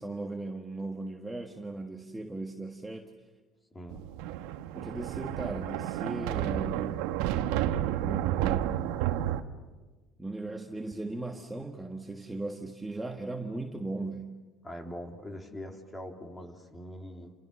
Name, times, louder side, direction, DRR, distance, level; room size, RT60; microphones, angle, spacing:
voice 1, 0.0-3.1 4.7-6.9 8.0-9.0 10.2-14.3, right 2 dB, 5° right, 2 dB, 1.5 m, -38 dB
Thunder, 3.9-9.4, right 12 dB, 85° right, 1.4 m, -31 dB
voice 2, 14.6-17.3, equal, 15° left, 4 dB, 3.0 m, -42 dB
29.5 x 29.0 x 6.5 m, 1.3 s
cardioid pair, 145°, 0 cm